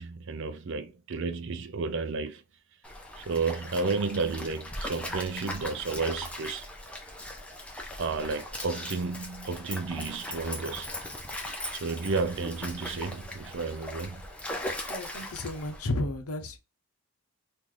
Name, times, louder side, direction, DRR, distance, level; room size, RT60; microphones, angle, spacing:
voice 1, 0.0-2.4 3.2-6.7 8.0-10.9 11.7-14.3, right 4 dB, 55° right, 0.4 m, -32 dB
Stream, 2.8-15.9, left 1 dB, 5° left, 0.5 m, -39 dB
voice 2, 14.7-16.6, left 2 dB, 80° left, 0.7 m, -33 dB
3.1 x 2.6 x 3.7 m
head